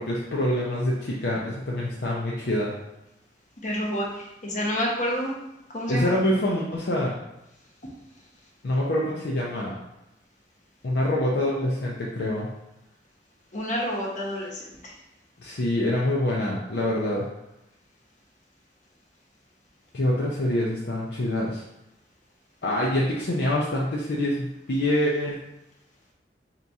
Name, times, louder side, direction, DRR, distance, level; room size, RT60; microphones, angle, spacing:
voice 1, 0.0-2.7 5.9-7.2 8.6-9.7 10.8-12.5 15.4-17.3 19.9-21.6 22.6-25.4, left 1 dB, 65° left, -4 dB, 0.6 m, -25 dB
voice 2, 3.6-4.1 4.4-5.3 5.7-6.1 13.5-14.7, equal, 45° left, -3 dB, 0.9 m, -28 dB
4.0 x 2.9 x 3.5 m, 0.88 s
head